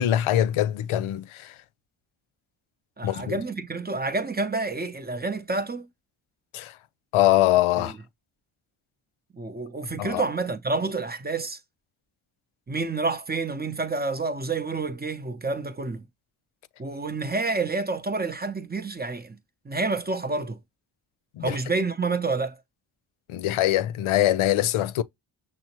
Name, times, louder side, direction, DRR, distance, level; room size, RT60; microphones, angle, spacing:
voice 1, 0.0-1.5 3.0-3.4 6.5-6.7 7.1-8.0 10.0-10.2 21.4-21.6 23.3-25.0, left 13 dB, 80° left, 0.5 m, -23 dB
voice 2, 3.0-5.9 7.8-7.9 9.3-11.6 12.7-16.0 16.8-19.4 19.6-20.6 21.4-22.6, right 3 dB, 20° right, 0.7 m, -28 dB
6.1 x 2.1 x 2.9 m
cardioid pair, 50°, 49 cm